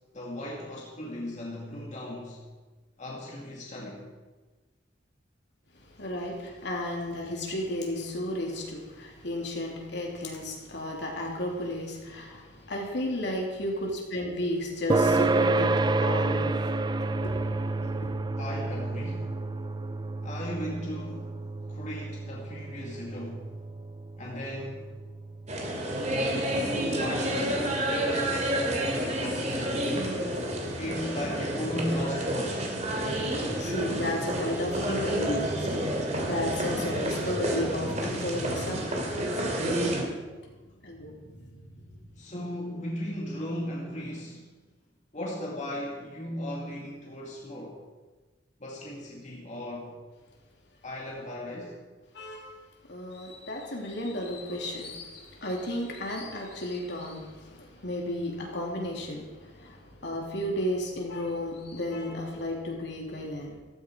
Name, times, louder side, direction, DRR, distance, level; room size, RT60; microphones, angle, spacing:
voice 1, 0.1-2.4 3.0-4.0 6.7-6.9 18.4-19.3 20.2-21.4 21.7-23.5 24.2-24.9 26.8-30.1 30.8-32.7 42.1-44.5 45.1-47.8 48.6-50.0 50.8-51.8, equal, 40° left, -2 dB, 2.2 m, -37 dB
voice 2, 5.8-16.7 17.2-17.4 17.8-18.1 30.4-30.8 32.9-40.0 40.4-40.5 40.8-42.0 52.1-52.5 52.9-63.6, left 1 dB, 65° left, -1 dB, 3.2 m, -34 dB
sound 1, 14.9-29.8, right 2 dB, 25° right, 0.5 m, -31 dB
sound 2, 25.5-40.0, right 1 dB, 40° right, 2.7 m, -30 dB
15.0 x 14.5 x 4.7 m, 1.3 s
head